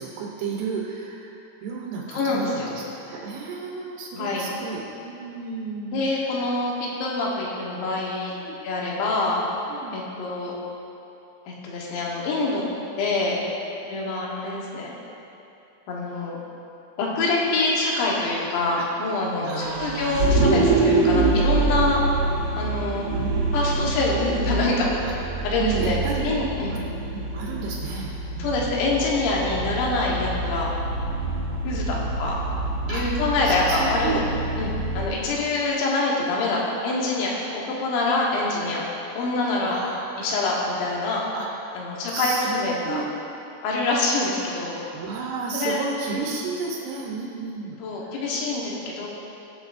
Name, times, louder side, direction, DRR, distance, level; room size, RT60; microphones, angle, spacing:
voice 1, 0.0-6.5 8.4-8.6 9.7-10.0 18.0-18.1 18.8-18.9 19.2-20.3 23.2-23.5 25.0-26.3 26.7-26.8 27.1-28.7 32.9-34.2 39.6-40.3 41.3-41.5 42.1-43.1 44.9-48.2, right 5 dB, 85° right, -3 dB, 3.6 m, -33 dB
voice 2, 2.1-2.7 4.1-4.5 5.9-6.7 7.0-8.4 8.6-9.4 9.9-10.6 11.5-12.6 13.0-13.4 13.9-14.9 15.9-16.4 17.0-22.0 22.6-23.0 23.5-24.9 25.4-26.0 26.2-26.7 28.4-30.7 31.7-32.4 32.9-34.2 34.6-38.8 39.2-39.8 40.2-41.2 41.8-43.0 43.6-44.8 45.5-45.8 46.1-46.2 47.8-49.1, left 3 dB, 70° left, -4 dB, 3.5 m, -25 dB
Vehicle, 19.6-35.1, right 3 dB, 55° right, 2.3 m, -26 dB
20.0 x 7.7 x 2.6 m, 2.8 s
omnidirectional pair, 5.5 m